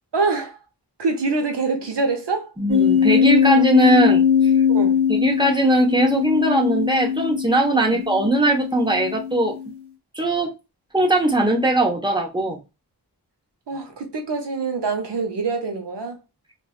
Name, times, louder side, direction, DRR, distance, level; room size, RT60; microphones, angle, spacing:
voice 1, 0.1-0.6 1.0-2.5 4.7-5.0 7.8-8.0 13.7-16.2, right 4 dB, 85° right, 0.9 m, -25 dB
voice 2, 2.6-4.5 5.1-9.6 10.1-10.5 10.9-12.6, right 1 dB, 10° right, 1.1 m, -20 dB
sound 1, 2.7-9.7, left 7 dB, 35° right, 1.2 m, -20 dB
3.1 x 2.5 x 2.4 m
wide cardioid pair, 50°, 41 cm